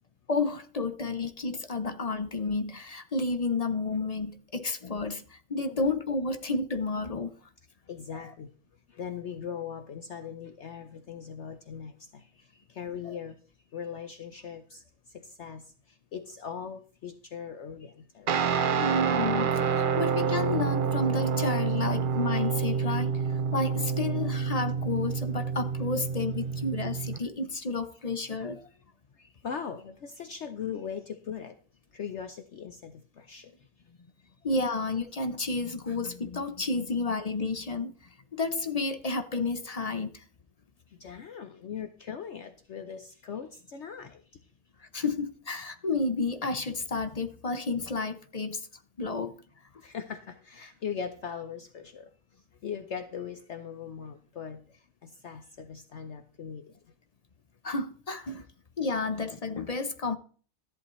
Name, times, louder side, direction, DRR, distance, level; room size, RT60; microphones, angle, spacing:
voice 1, 0.3-7.3 8.1-8.3 13.0-13.2 18.8-23.2 23.5-28.6 34.4-37.9 38.3-40.2 44.8-48.7 49.0-49.4 57.6-58.4 58.8-60.2, left 3 dB, 35° left, 0.6 m, -31 dB
voice 2, 7.9-8.5 8.9-13.4 13.7-14.8 15.1-15.6 16.1-18.3 29.2-31.5 31.9-33.5 41.0-44.2 49.8-52.0 52.6-54.6 55.0-56.6, left 7 dB, 55° left, 1.0 m, -39 dB
Guitar, 18.3-27.2, right 6 dB, 50° right, 0.6 m, -28 dB
14.0 x 11.0 x 3.2 m
omnidirectional pair, 1.5 m